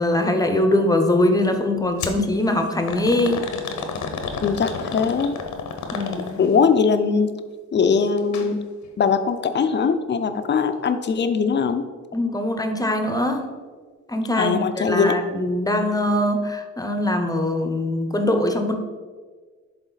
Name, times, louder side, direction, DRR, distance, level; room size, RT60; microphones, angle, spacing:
voice 1, 0.0-3.5 5.9-6.4 12.1-13.5 14.1-18.7, left 1 dB, 10° left, 6 dB, 0.9 m, -22 dB
sound 1, 2.0-2.2 2.9-6.6 8.2-8.5 8.8-8.9 9.8-9.9, left 5 dB, 75° left, 1.1 m, -30 dB
voice 2, 4.4-5.4 6.4-7.4 7.7-8.6 9.0-11.8 14.4-15.2, left 5 dB, 35° left, 9 dB, 0.6 m, -21 dB
11.0 x 3.8 x 4.1 m, 1.5 s
cardioid pair, 90°, 30 cm